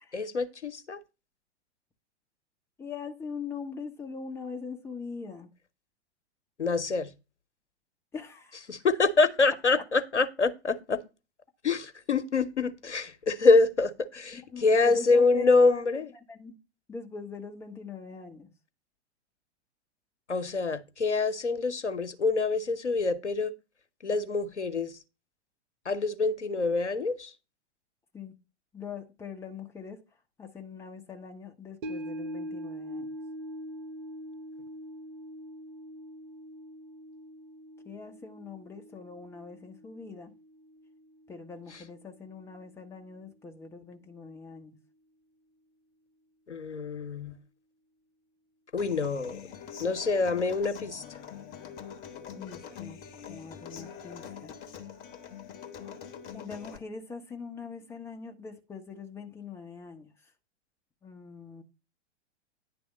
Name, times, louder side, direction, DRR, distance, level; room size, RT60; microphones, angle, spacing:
voice 1, 0.1-1.0 6.6-7.1 8.7-11.0 11.6-16.1 20.3-23.5 24.0-24.9 25.9-27.3 46.5-47.4 48.7-49.4 49.8-51.0, left 3 dB, 75° left, 1.0 m, -26 dB
voice 2, 2.8-5.5 8.1-8.6 14.3-16.0 16.3-16.6 16.9-18.5 28.1-28.3 28.7-30.0 30.4-33.1 37.8-40.3 41.3-44.8 52.3-53.0 53.3-54.5 56.3-60.1 61.0-61.6, left 4 dB, 5° left, 0.8 m, -42 dB
sound 1, 31.8-42.2 42.6-42.7, equal, 50° right, 0.9 m, -43 dB
Human voice / Acoustic guitar, 48.8-56.8, left 8 dB, 25° left, 1.0 m, -44 dB
10.0 x 3.5 x 6.1 m
figure-of-eight pair, 105°, 35 cm